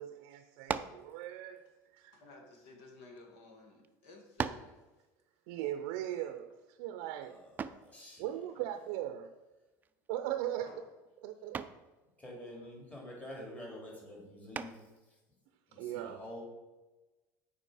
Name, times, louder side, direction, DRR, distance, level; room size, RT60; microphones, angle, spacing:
voice 1, 0.0-1.6 1.9-2.1 5.5-7.5 8.2-9.3 10.1-10.7 11.2-11.7 15.7-16.2, right 12 dB, 85° right, 0.5 m, -39 dB
sound 1, 0.6-1.1 2.0-3.2 3.8-3.9 4.4-4.8 7.6-7.9 9.8-10.2 10.6-10.9 11.5-11.9 14.5-15.0, right 6 dB, 25° right, 0.3 m, -39 dB
voice 2, 2.1-5.1 8.5-8.7 10.6-10.9 12.4-12.7, left 3 dB, 85° left, 1.9 m, -56 dB
voice 3, 7.2-8.2 12.2-14.8 15.7-16.4, left 1 dB, 20° left, 2.4 m, -47 dB
7.6 x 4.9 x 4.9 m
cardioid pair, 135°, 8 cm